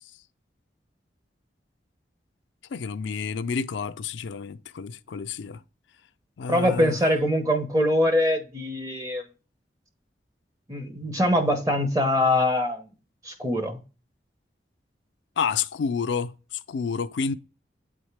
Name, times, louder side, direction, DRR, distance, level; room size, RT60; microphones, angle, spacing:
voice 1, 2.7-5.6 6.4-7.0 15.4-16.3 16.7-17.3, left 5 dB, 85° left, 0.4 m, -29 dB
voice 2, 6.5-9.2 10.7-12.9 13.2-13.8, left 1 dB, 20° right, 0.8 m, -23 dB
8.7 x 3.6 x 3.3 m
head